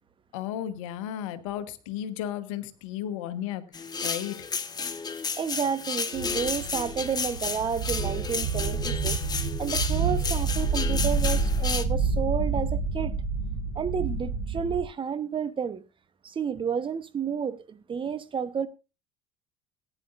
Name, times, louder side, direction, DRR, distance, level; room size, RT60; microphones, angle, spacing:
voice 1, 0.3-4.5, left 11 dB, 70° left, 1.2 m, -34 dB
sound 1, 3.7-11.8, left 5 dB, 25° left, 1.3 m, -32 dB
voice 2, 5.4-9.2 9.6-13.1 13.7-15.8 16.2-18.7, right 7 dB, 30° right, 1.0 m, -31 dB
sound 2, 6.1-14.8, right 4 dB, 80° right, 6.3 m, -28 dB
18.0 x 10.0 x 2.6 m
hypercardioid pair, 70°, 17 cm